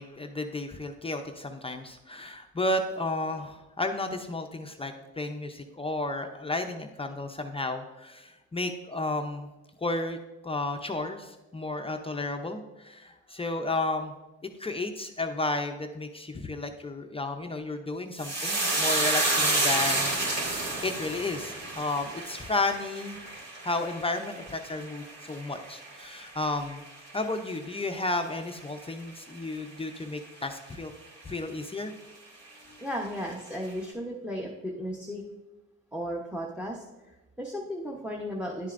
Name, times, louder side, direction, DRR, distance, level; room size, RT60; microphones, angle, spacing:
voice 1, 0.0-9.5 9.8-10.2 10.4-14.1 14.6-20.1 20.5-23.2 23.6-26.8 27.1-30.9 31.2-31.9 32.7-32.8, left 2 dB, 20° left, 5 dB, 0.6 m, -32 dB
sound 1, 18.2-26.8 27.1-27.7 28.0-28.3, right 2 dB, 60° right, 2.3 m, -30 dB
voice 2, 32.8-35.2 35.9-38.7, equal, 5° right, -1 dB, 0.9 m, -35 dB
10.0 x 7.3 x 2.5 m, 1.1 s
cardioid pair, 90°, 30 cm